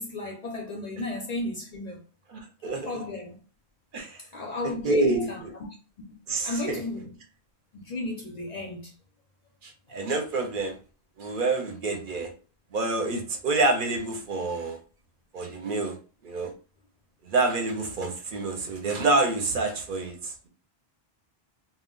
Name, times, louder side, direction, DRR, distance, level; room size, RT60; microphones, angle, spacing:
voice 1, 0.0-2.0 2.7-3.4 4.3-5.4 6.4-7.1 7.7-8.9, left 2 dB, 55° left, 0.5 m, -33 dB
voice 2, 2.3-3.0 3.9-4.2 4.6-5.5 6.3-6.8 9.6-10.8 11.2-12.3 12.7-14.8 15.3-16.0 16.2-16.5 17.2-20.5, right 3 dB, 60° right, 0.7 m, -27 dB
2.2 x 2.0 x 3.6 m
omnidirectional pair, 1.0 m